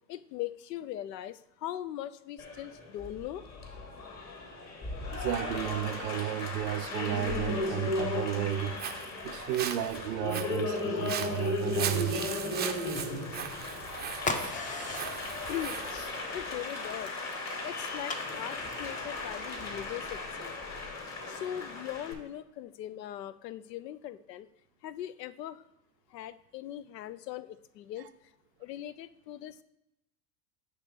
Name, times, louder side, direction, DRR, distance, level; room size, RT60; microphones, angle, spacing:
voice 1, 0.1-3.5 15.5-17.2 17.6-20.5 21.3-24.5 24.8-25.6 26.1-28.3 28.6-29.6, left 12 dB, 75° left, 0.6 m, -40 dB
Applause, 2.4-22.1, left 2 dB, 30° left, 1.6 m, -36 dB
voice 2, 5.1-12.3, right 13 dB, 75° right, 0.6 m, -33 dB
Walk footsteps, 8.5-16.1, right 9 dB, 20° right, 0.5 m, -39 dB
sound 1, 14.2-19.4, left 3 dB, 15° left, 0.6 m, -40 dB
7.9 x 3.1 x 5.3 m
hypercardioid pair, 90°, 49 cm